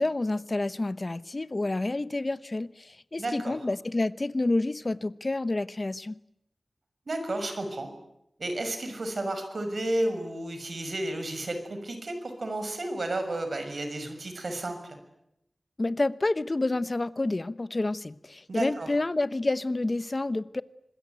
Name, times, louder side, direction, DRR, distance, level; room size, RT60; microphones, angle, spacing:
voice 1, 0.0-6.2 15.8-20.6, left 2 dB, 40° left, 1.0 m, -29 dB
voice 2, 3.2-3.5 7.1-7.9 8.4-15.0 18.5-18.9, right 1 dB, 70° right, 6.3 m, -32 dB
26.0 x 21.0 x 9.3 m
wide cardioid pair, 80°, 0 cm